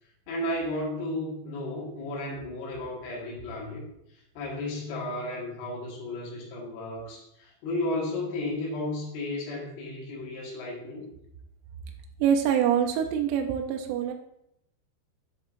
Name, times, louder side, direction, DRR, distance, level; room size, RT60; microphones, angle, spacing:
voice 1, 0.3-3.8 4.4-11.0, left 1 dB, 70° left, -4 dB, 3.4 m, -33 dB
voice 2, 12.2-14.1, right 8 dB, 85° right, 4 dB, 2.7 m, -25 dB
7.9 x 5.4 x 2.5 m, 0.78 s
omnidirectional pair, 5.1 m